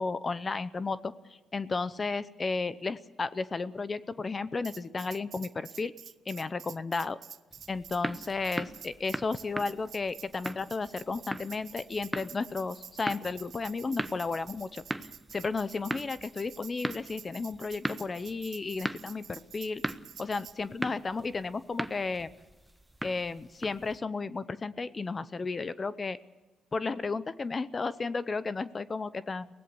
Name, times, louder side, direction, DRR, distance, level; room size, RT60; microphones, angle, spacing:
voice 1, 0.0-5.9 6.3-7.2 7.7-14.8 15.3-19.8 20.2-22.3 23.0-26.2 26.7-29.5, left 4 dB, 30° left, 16 dB, 0.7 m, -33 dB
Tambourine, 4.6-20.6, right 8 dB, 60° right, 0.7 m, -49 dB
sound 1, 7.5-24.0, right 1 dB, 5° right, 0.9 m, -40 dB
23.5 x 17.5 x 6.9 m, 1.2 s
cardioid pair, 90°, 0 cm